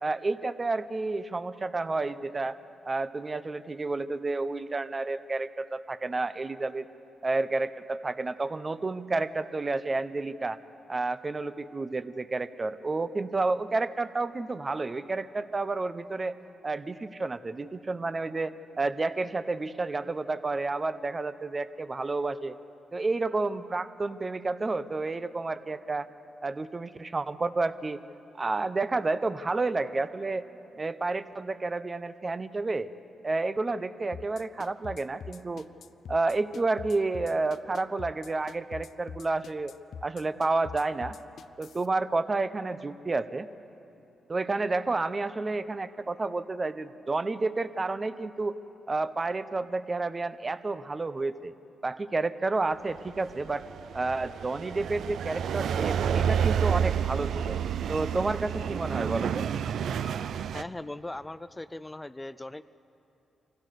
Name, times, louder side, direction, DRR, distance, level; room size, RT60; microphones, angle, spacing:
voice 1, 0.0-2.6 2.8-6.9 7.2-10.6 10.9-16.4 16.6-22.6 22.9-26.1 26.4-28.0 28.3-30.5 30.8-32.9 33.2-35.7 36.1-39.7 40.0-41.2 41.6-43.5 44.3-48.5 48.9-51.5 51.8-53.7 53.9-57.6 57.9-59.5, right 3 dB, 30° right, 13 dB, 0.7 m, -30 dB
sound 1, 34.1-41.9, left 6 dB, 70° left, 0.5 m, -44 dB
Train Passing Station Platform, 53.1-60.6, right 8 dB, 75° right, 0.5 m, -29 dB
voice 2, 60.5-62.6, left 2 dB, 15° left, 14 dB, 0.4 m, -39 dB
24.0 x 16.0 x 6.7 m, 2.9 s
cardioid pair, 80°, 0 cm